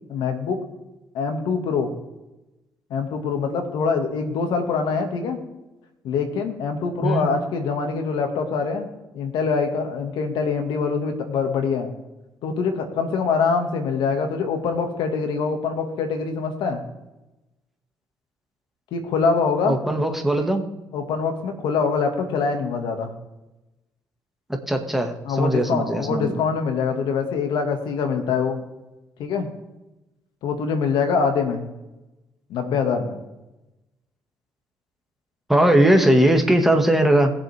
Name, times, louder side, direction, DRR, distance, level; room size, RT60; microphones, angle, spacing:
voice 1, 0.1-0.6 1.1-1.9 2.9-5.4 6.0-8.9 9.1-11.9 12.4-16.8 18.9-19.8 20.9-23.1 25.2-28.6 29.2-29.5 30.4-31.6 32.5-33.2, left 5 dB, 80° left, 5 dB, 2.3 m, -24 dB
voice 2, 19.7-20.6 24.7-26.3 35.5-37.3, right 1 dB, 5° right, 3 dB, 2.2 m, -19 dB
20.5 x 7.7 x 3.7 m, 0.99 s
cardioid pair, 80°, 8 cm